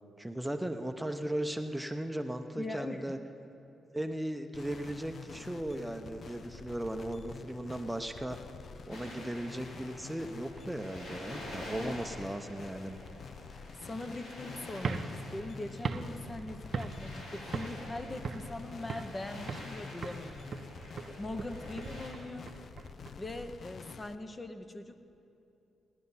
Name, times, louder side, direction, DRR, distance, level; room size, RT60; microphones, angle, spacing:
voice 1, 0.2-3.2 3.9-8.4 8.9-13.0, right 1 dB, 10° right, 6 dB, 0.7 m, -37 dB
voice 2, 2.5-3.2 11.8-11.9 13.8-20.9 21.2-22.5 23.2-25.1, left 2 dB, 25° left, 8 dB, 0.8 m, -41 dB
sound 1, 4.5-24.1, left 5 dB, 55° left, 0.5 m, -48 dB
sound 2, 8.9-22.1, left 1 dB, 90° left, 3.0 m, -48 dB
sound 3, 14.7-17.2 17.5-17.9 18.2-19.2 19.5-19.8 20.0-23.1, right 4 dB, 55° right, 0.7 m, -39 dB
18.0 x 10.5 x 5.6 m, 2.8 s
cardioid pair, 75°, 0 cm